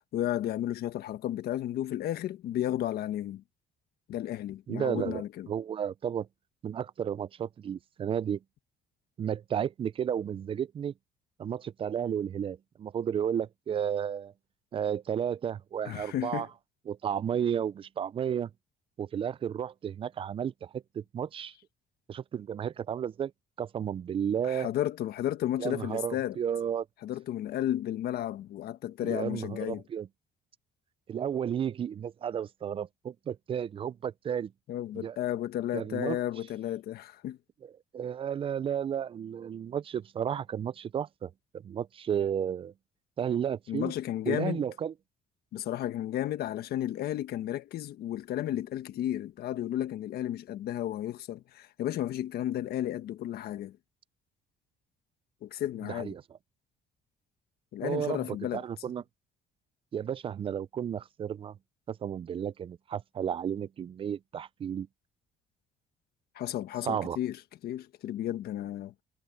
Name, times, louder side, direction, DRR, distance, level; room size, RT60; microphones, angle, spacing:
voice 1, 0.1-3.4 4.1-5.5 15.8-16.5 24.4-26.4 27.0-29.8 34.7-37.4 43.7-44.7 45.5-53.8 55.4-56.2 57.7-58.6 66.3-67.4 67.6-68.9, left 12 dB, 70° left, 1.4 m, -33 dB
voice 2, 4.7-6.3 6.6-8.4 9.2-10.9 11.4-14.3 14.7-16.5 16.9-18.5 19.0-21.5 22.1-23.3 23.6-24.7 25.6-26.9 29.0-30.1 31.1-34.5 34.9-35.2 35.7-36.2 37.9-41.3 41.6-42.7 43.2-43.9 44.3-44.9 55.9-56.2 57.8-59.0 59.9-61.6 61.9-64.9 66.8-67.2, right 8 dB, 35° right, 0.4 m, -33 dB
cardioid pair, 110°, 17 cm